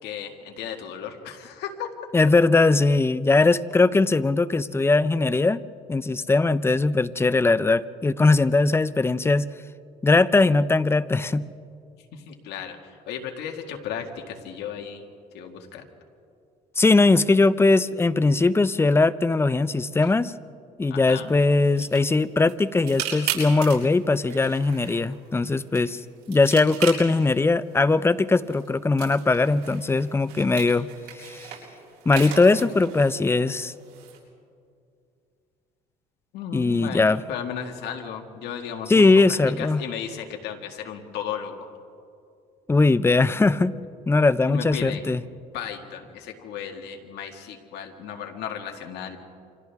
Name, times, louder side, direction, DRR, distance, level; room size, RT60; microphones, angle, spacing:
voice 1, 0.0-1.9 12.1-15.1 15.3-15.8 20.9-21.3 36.3-41.7 44.5-45.1 45.5-49.2, left 8 dB, 80° left, 3 dB, 2.0 m, -35 dB
voice 2, 2.1-5.6 5.9-9.5 10.0-11.4 16.8-20.3 20.8-26.0 26.3-30.9 31.2-31.5 32.1-33.7 36.5-37.2 38.9-39.8 42.7-43.7 44.1-45.2, left 3 dB, 15° left, 16 dB, 0.5 m, -20 dB
sound 1, 21.2-34.2, right 9 dB, 85° right, 7.1 m, -38 dB
29.0 x 25.5 x 3.6 m, 2.4 s
cardioid pair, 110°, 17 cm